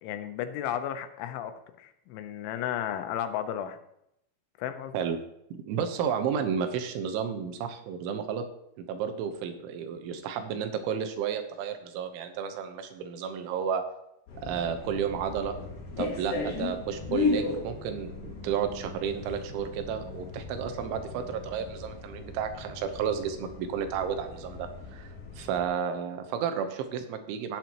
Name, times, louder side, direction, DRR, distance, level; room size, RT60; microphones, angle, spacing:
voice 1, 0.0-3.8 4.6-5.1, left 10 dB, 85° left, 8 dB, 3.3 m, -34 dB
voice 2, 5.7-8.5 8.8-13.8 14.4-15.6 16.0-27.6, right 7 dB, 85° right, 7 dB, 3.5 m, -32 dB
sound 1, 14.3-25.6, left 4 dB, 55° left, 4.1 m, -36 dB
17.5 x 8.1 x 3.0 m, 0.78 s
omnidirectional pair, 5.3 m